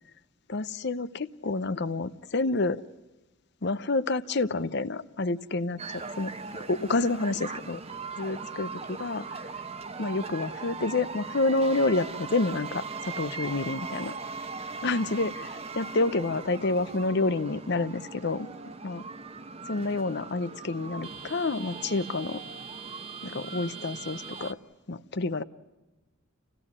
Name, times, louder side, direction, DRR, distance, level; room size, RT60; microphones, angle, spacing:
voice 1, 0.5-2.8 3.6-6.3 6.7-7.8 8.2-9.4 10.0-14.1 14.8-18.5 18.8-19.0 19.7-22.4 23.2-24.6 24.9-25.4, left 3 dB, 55° left, 14 dB, 0.8 m, -29 dB
sound 1, 5.8-24.5, right 4 dB, 30° right, 1.0 m, -39 dB
28.5 x 17.0 x 9.7 m, 1.1 s
head